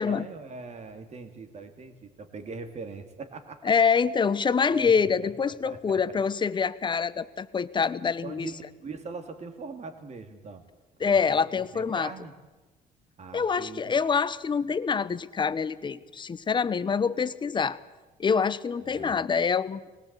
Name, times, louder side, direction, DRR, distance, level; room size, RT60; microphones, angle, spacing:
voice 1, 0.0-3.7 4.7-4.9 5.2-6.2 8.2-10.6 11.0-12.3 13.2-13.9 18.7-19.2, right 4 dB, 40° right, 7 dB, 2.6 m, -41 dB
voice 2, 3.6-8.5 11.0-12.1 13.3-17.8 18.2-19.8, left 6 dB, 30° left, 16 dB, 0.8 m, -25 dB
20.0 x 18.0 x 8.2 m, 1.2 s
cardioid pair, 110°, 17 cm